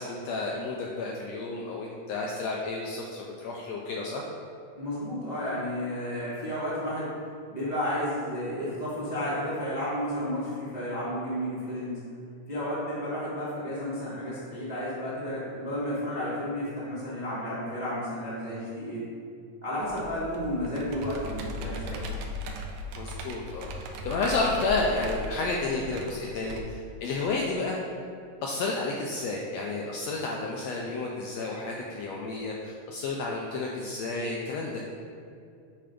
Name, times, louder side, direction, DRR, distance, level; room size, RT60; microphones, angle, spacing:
voice 1, 0.0-4.2 23.0-23.7 24.0-27.8 28.4-34.8, left 3 dB, 80° left, -1 dB, 1.5 m, -31 dB
voice 2, 4.8-7.1 7.5-12.0 12.5-19.0 19.6-22.0, equal, 30° right, -10 dB, 0.7 m, -32 dB
Computer keyboard, 19.8-26.6, left 1 dB, 80° right, 1.8 m, -38 dB
8.7 x 3.4 x 5.2 m, 2.5 s
omnidirectional pair, 3.5 m